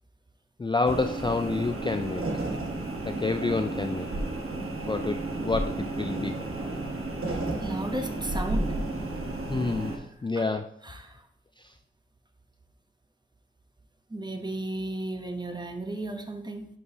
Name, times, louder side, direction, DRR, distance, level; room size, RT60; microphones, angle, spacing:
voice 1, 0.6-2.2 3.0-4.1 4.9-6.4 9.5-9.9 10.2-10.8 11.6-11.7, left 3 dB, 20° left, 7 dB, 0.3 m, -28 dB
sound 1, 0.8-10.0, right 2 dB, 90° right, 1.2 m, -32 dB
voice 2, 7.6-8.8 9.9-10.0 10.4-10.5 10.8-11.2 14.1-16.7, right 1 dB, 20° right, 5 dB, 0.9 m, -34 dB
11.5 x 4.8 x 2.8 m, 0.72 s
wide cardioid pair, 70°, 21 cm